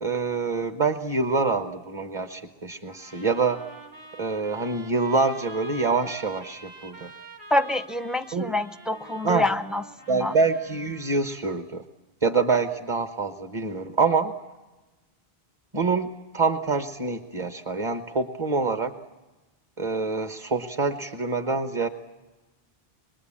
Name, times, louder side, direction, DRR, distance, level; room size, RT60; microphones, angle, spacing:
voice 1, 0.0-3.6 4.2-7.1 8.3-8.5 9.2-9.4 10.1-11.8 12.2-14.3 15.7-18.9 19.8-21.9, right 4 dB, 30° right, 8 dB, 1.0 m, -26 dB
sound 1, 2.9-11.3, right 2 dB, 80° right, 2.6 m, -46 dB
voice 2, 7.5-9.8 10.1-10.3, left 1 dB, ahead, 10 dB, 0.5 m, -26 dB
25.0 x 22.0 x 8.6 m, 1.1 s
omnidirectional pair, 1.1 m